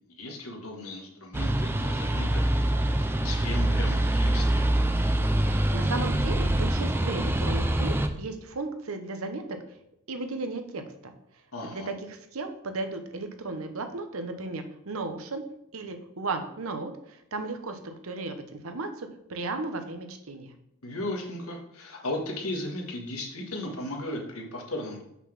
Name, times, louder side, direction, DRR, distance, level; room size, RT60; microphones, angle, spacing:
voice 1, 0.1-4.7 11.5-11.9 20.8-25.0, left 1 dB, 80° left, 1 dB, 1.5 m, -36 dB
sound 1, 1.3-8.1, right 1 dB, 10° right, 0.4 m, -25 dB
voice 2, 5.5-9.6 10.1-11.1 11.6-15.4 15.7-20.5, right 3 dB, 70° right, 7 dB, 0.8 m, -35 dB
5.8 x 4.0 x 5.9 m, 0.80 s
head